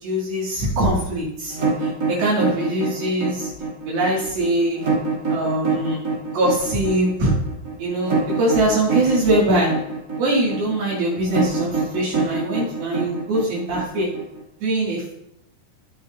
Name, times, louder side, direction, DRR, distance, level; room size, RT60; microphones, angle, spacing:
voice 1, 0.0-3.5 3.9-4.9 5.3-7.4 7.8-9.9 10.2-14.1 14.6-15.1, right 1 dB, 55° right, -7 dB, 4.0 m, -22 dB
sound 1, 1.5-14.4, right 4 dB, 30° right, 2.3 m, -24 dB
16.0 x 6.9 x 2.8 m, 0.76 s
omnidirectional pair, 5.5 m